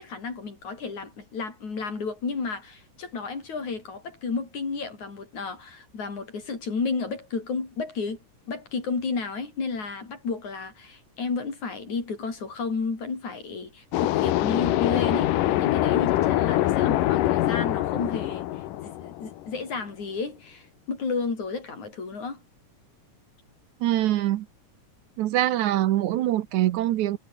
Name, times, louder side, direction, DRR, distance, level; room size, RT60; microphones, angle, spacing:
voice 1, 0.0-8.2 8.5-22.4, left 4 dB, 65° left, 6.6 m, -32 dB
sound 1, 13.9-19.6, left 15 dB, 90° left, 2.6 m, -24 dB
voice 2, 23.8-24.5 25.2-27.2, right 13 dB, 70° right, 2.2 m, -24 dB
omnidirectional pair, 3.6 m